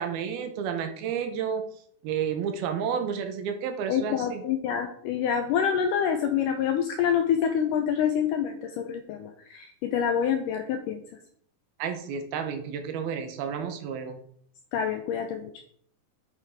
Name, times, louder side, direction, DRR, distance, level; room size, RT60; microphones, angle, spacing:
voice 1, 0.0-1.7 2.0-4.4 11.8-14.2, right 7 dB, 80° right, 6 dB, 2.8 m, -31 dB
voice 2, 3.9-11.0 14.7-15.5, left 8 dB, 85° left, 5 dB, 1.9 m, -27 dB
8.4 x 7.6 x 3.6 m, 0.63 s
omnidirectional pair, 4.5 m